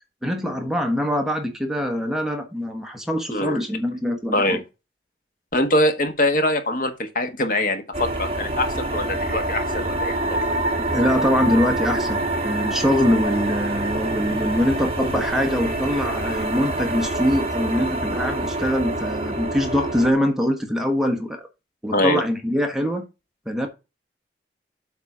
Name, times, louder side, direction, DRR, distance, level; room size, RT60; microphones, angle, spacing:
voice 1, 0.2-4.6 10.8-21.5 21.8-23.1 23.5-23.7, equal, 5° right, 1.3 m, -23 dB
voice 2, 3.3-3.6 4.3-4.6 5.5-10.4 21.9-22.2, left 1 dB, 50° left, 1.4 m, -23 dB
sound 1, 7.9-20.1, right 2 dB, 35° right, 1.5 m, -26 dB
8.2 x 4.1 x 6.1 m
head